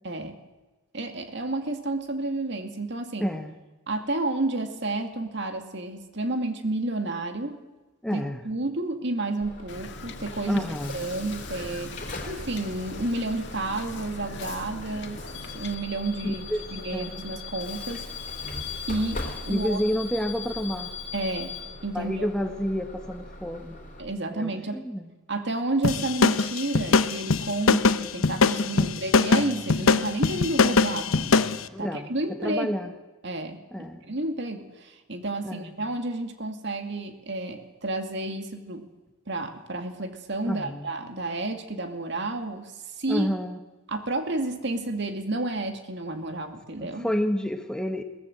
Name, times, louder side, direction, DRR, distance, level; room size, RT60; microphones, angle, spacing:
voice 1, 0.0-0.4 0.9-3.3 3.9-7.6 8.1-10.6 10.9-16.4 16.7-18.4 18.9-19.9 21.1-22.3 24.0-24.8 25.3-32.7 33.2-38.9 39.3-43.3 43.9-47.1, right 2 dB, 60° right, 6 dB, 2.3 m, -31 dB
voice 2, 3.2-3.5 8.0-8.4 10.5-11.0 16.2-16.7 16.9-17.2 19.5-20.9 21.9-23.8 24.3-25.1 28.7-28.9 31.7-32.1 32.4-32.9 33.7-34.1 35.4-35.7 40.5-40.9 43.1-43.6 46.8-48.0, equal, 5° left, 6 dB, 1.2 m, -29 dB
Bus / Alarm, 9.4-24.0, left 3 dB, 40° left, 3.8 m, -39 dB
Wind / Boat Water vehicle, 9.7-15.7, left 3 dB, 60° left, 2.1 m, -42 dB
sound 1, 25.8-31.6, left 4 dB, 80° left, 0.8 m, -21 dB
22.5 x 18.0 x 7.9 m, 1.1 s
head